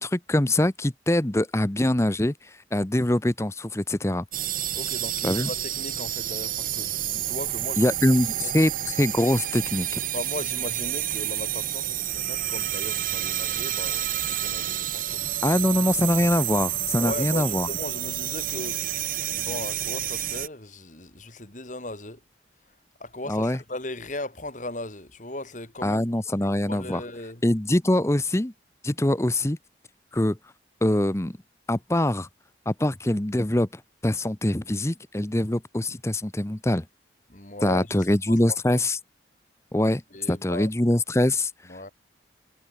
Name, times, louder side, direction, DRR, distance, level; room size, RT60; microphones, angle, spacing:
voice 1, 0.0-4.2 5.2-5.5 7.8-10.0 15.4-17.7 23.3-23.6 25.8-27.0 27.4-28.5 28.8-29.6 30.1-30.4 30.8-31.4 31.7-32.3 32.7-36.8 37.6-39.0 39.7-40.0 40.3-41.5, left 1 dB, 15° left, 0.8 m, -23 dB
sound 1, 4.3-20.5, right 12 dB, 50° right, 1.4 m, -29 dB
voice 2, 4.7-8.5 10.1-15.3 15.7-15.8 17.0-18.8 19.3-22.2 23.0-27.4 37.3-38.0 38.3-38.8 40.1-40.7 41.7-41.9, left 1 dB, 45° left, 3.3 m, -37 dB
head